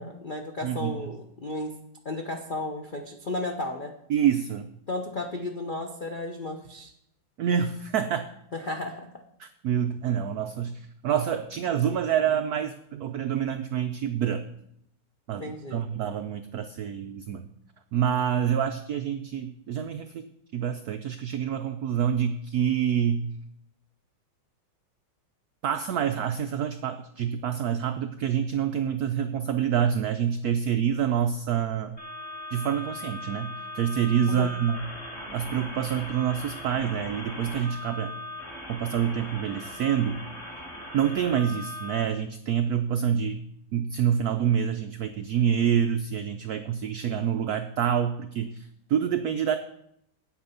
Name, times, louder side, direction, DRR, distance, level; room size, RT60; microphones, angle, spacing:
voice 1, 0.0-1.7 2.0-3.9 4.9-6.9 8.5-9.1 15.4-15.8 34.3-34.5, left 2 dB, 65° left, 2 dB, 0.5 m, -34 dB
voice 2, 0.6-1.1 4.1-4.7 7.4-8.3 9.4-14.4 15.3-17.4 17.9-23.3 25.6-32.0 32.5-34.8 35.3-38.1 38.7-40.2 40.9-43.4 43.7-49.6, right 8 dB, 80° right, 8 dB, 0.8 m, -27 dB
sound 1, 32.0-42.0, left 1 dB, 30° left, 2.2 m, -39 dB
8.6 x 8.4 x 5.6 m, 0.74 s
omnidirectional pair, 2.2 m